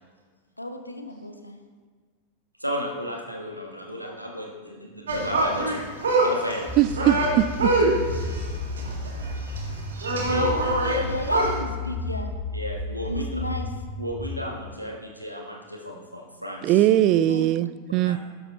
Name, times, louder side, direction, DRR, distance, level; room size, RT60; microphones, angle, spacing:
voice 1, 0.6-1.6 7.5-8.1 10.3-12.3 13.0-13.7 17.3-17.4, left 1 dB, 85° left, 5 dB, 0.9 m, -33 dB
voice 2, 2.6-5.8 6.2-6.8 10.2-11.0 12.5-13.4 14.0-16.8 18.0-18.2, equal, 90° right, 0 dB, 1.5 m, -33 dB
sound 1, 5.1-11.6, right 2 dB, 65° right, 2.0 m, -25 dB
sound 2, 6.7-14.4, left 3 dB, ahead, 0.9 m, -33 dB
voice 3, 6.8-7.8 16.6-18.2, right 13 dB, 40° right, 17 dB, 0.3 m, -21 dB
12.5 x 8.1 x 3.1 m, 1.5 s
figure-of-eight pair, 90°, 0 cm